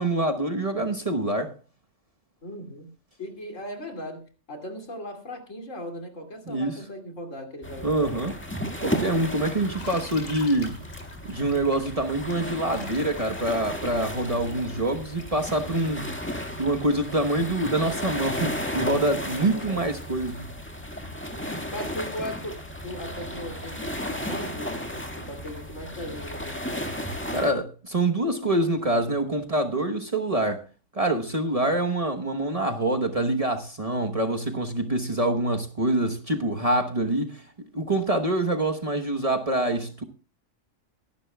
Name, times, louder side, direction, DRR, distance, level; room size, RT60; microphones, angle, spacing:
voice 1, 0.0-1.5 6.5-6.8 7.8-8.4 8.8-10.8 11.3-16.1 16.6-20.4 27.3-30.6 30.9-37.4 37.7-40.0, right 1 dB, 30° right, 1.1 m, -25 dB
voice 2, 2.4-2.9 3.2-8.4 19.4-19.8 21.7-26.9, left 1 dB, 75° left, 3.0 m, -38 dB
sound 1, 7.6-27.5, equal, 10° left, 1.8 m, -34 dB
Bathtub (filling or washing), 9.7-15.4, left 3 dB, 90° left, 2.7 m, -45 dB
23.5 x 11.5 x 2.3 m
omnidirectional pair, 1.3 m